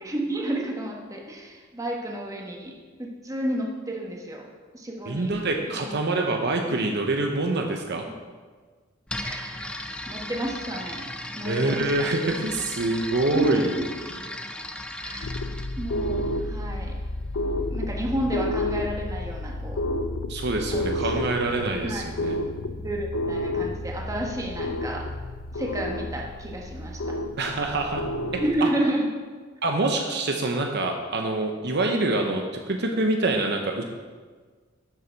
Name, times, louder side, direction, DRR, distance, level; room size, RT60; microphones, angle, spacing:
voice 1, 0.0-2.7 3.0-4.5 4.7-5.4 5.8-5.9 6.7-6.8 9.2-12.1 13.3-13.6 15.0-15.3 15.8-17.0 17.7-19.8 20.7-21.3 21.8-22.0 22.8-25.1 25.5-27.2 28.4-29.1, right 1 dB, 15° right, 0 dB, 1.3 m, -31 dB
voice 2, 5.1-8.0 11.4-13.7 20.3-22.4 27.4-28.0 28.3-28.7 29.6-33.8, right 2 dB, 55° right, 3 dB, 0.9 m, -26 dB
sound 1, 9.1-16.9, left 1 dB, 5° left, 0.5 m, -37 dB
sound 2, 15.2-28.6, left 1 dB, 85° left, 0.7 m, -30 dB
12.0 x 6.8 x 4.6 m, 1.5 s
head